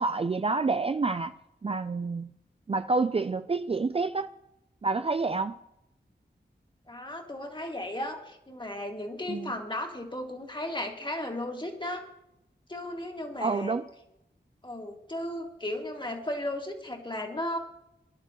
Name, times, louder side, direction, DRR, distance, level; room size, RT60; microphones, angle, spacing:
voice 1, 0.0-1.3 1.6-2.3 2.7-4.3 4.8-5.6 9.3-9.5 13.4-13.9, right 3 dB, 30° right, 0.4 m, -28 dB
voice 2, 6.9-12.0 12.7-13.8 14.6-17.6, left 1 dB, 25° left, 2.0 m, -35 dB
22.0 x 11.0 x 3.0 m
wide cardioid pair, 70°, 18 cm